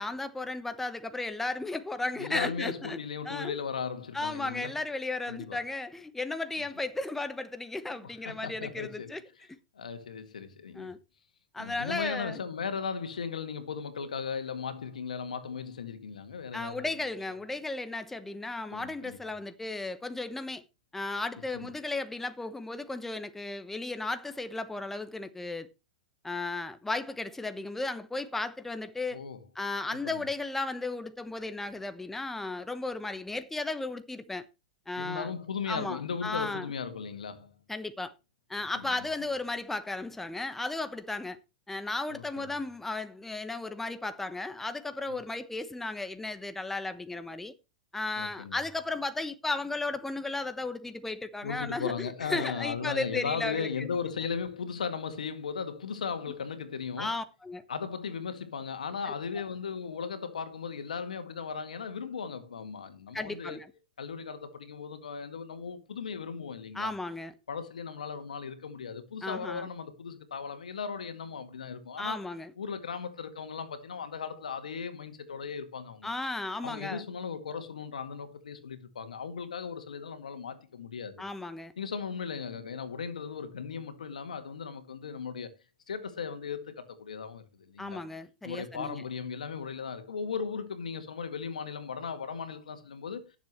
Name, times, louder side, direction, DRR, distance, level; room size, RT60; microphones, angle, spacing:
voice 1, 0.0-3.0 3.2-3.6 4.1-9.2 10.7-11.0 11.5-12.4 16.5-20.6 20.9-25.7 26.2-29.2 29.5-34.5 34.9-35.3 35.7-36.7 37.7-38.1 38.5-41.4 41.7-47.5 47.9-53.9 57.0-57.6 59.1-59.2 63.1-63.7 66.7-67.3 69.2-69.7 72.0-72.5 76.0-77.0 81.2-81.7 87.8-89.0, left 2 dB, 5° left, 1.1 m, -35 dB
voice 2, 2.2-4.7 5.3-5.6 8.0-9.1 9.8-10.9 11.6-16.9 18.7-19.2 21.5-21.7 29.1-29.4 30.0-30.2 34.9-37.5 38.8-39.1 42.1-42.5 45.1-45.2 48.2-48.6 51.4-57.2 57.7-63.6 64.0-66.9 67.5-72.2 72.6-76.1 76.6-81.2 81.8-85.5 85.9-88.0 88.4-93.2, left 6 dB, 90° left, 2.0 m, -37 dB
17.5 x 7.3 x 3.1 m
hypercardioid pair, 120°, 4 cm